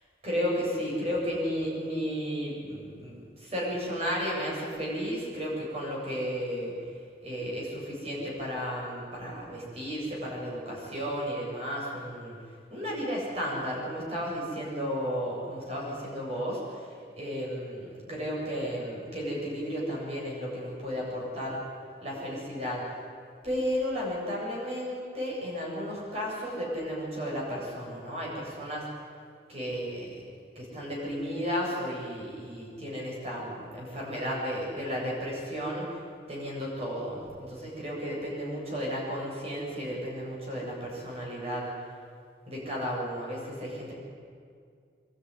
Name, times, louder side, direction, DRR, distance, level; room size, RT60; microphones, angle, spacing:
voice 1, 0.2-6.7 7.2-12.4 12.7-16.8 17.2-21.6 22.0-22.8 23.4-28.8 29.5-30.2 30.5-35.9 36.3-41.7 42.5-43.9, equal, 35° right, -4 dB, 7.7 m, -33 dB
25.0 x 12.5 x 9.9 m, 2.2 s
head